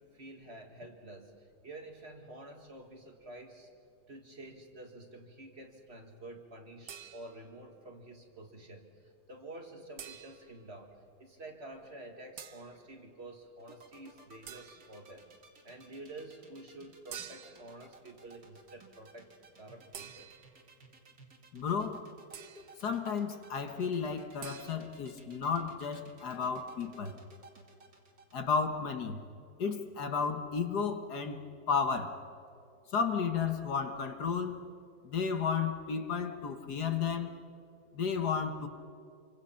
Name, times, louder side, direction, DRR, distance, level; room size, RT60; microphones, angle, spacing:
voice 1, 0.0-3.7 4.1-15.3 15.6-19.3 19.6-20.3, right 2 dB, 35° right, 3 dB, 2.0 m, -49 dB
sound 1, 6.9-7.6 10.0-10.6 12.4-12.8 14.5-15.0 17.1-17.8 19.9-20.7 22.3-22.8 24.4-24.7, right 8 dB, 70° right, 1.6 m, -48 dB
sound 2, 13.6-28.4, right 3 dB, 50° right, 2.7 m, -57 dB
voice 2, 21.5-22.0 22.8-27.2 28.3-29.2 29.6-32.2 32.9-34.7 35.0-37.3 37.9-38.7, left 6 dB, 65° left, 7 dB, 1.8 m, -33 dB
27.0 x 24.5 x 5.8 m, 2.5 s
omnidirectional pair, 1.9 m